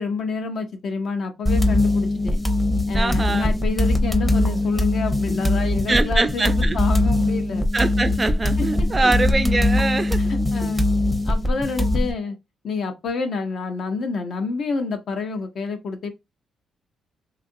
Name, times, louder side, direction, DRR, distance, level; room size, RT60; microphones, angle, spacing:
voice 1, 0.0-2.4 2.9-7.7 8.8-9.1 10.2-10.9 11.2-12.4 12.6-16.1, left 4 dB, 60° left, 0.6 m, -28 dB
sound 1, 1.5-12.1, left 1 dB, 10° left, 0.7 m, -21 dB
voice 2, 2.9-3.5 5.9-6.8 7.7-10.2, right 3 dB, 25° right, 0.4 m, -23 dB
2.8 x 2.4 x 2.6 m
cardioid pair, 90°, 0 cm